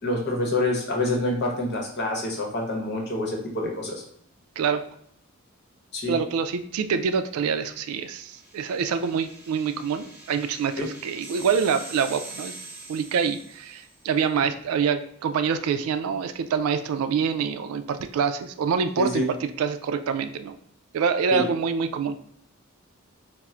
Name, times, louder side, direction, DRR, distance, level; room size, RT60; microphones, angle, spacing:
voice 1, 0.0-4.0 5.9-6.1 10.8-10.9 19.0-19.3 21.3-21.5, left 2 dB, 50° left, -1 dB, 0.8 m, -27 dB
voice 2, 6.1-12.5 12.9-20.6 20.9-22.2, right 6 dB, 85° right, 10 dB, 0.3 m, -26 dB
sound 1, 8.1-14.0, right 3 dB, 5° right, 0.9 m, -43 dB
4.2 x 2.0 x 2.4 m, 0.69 s
head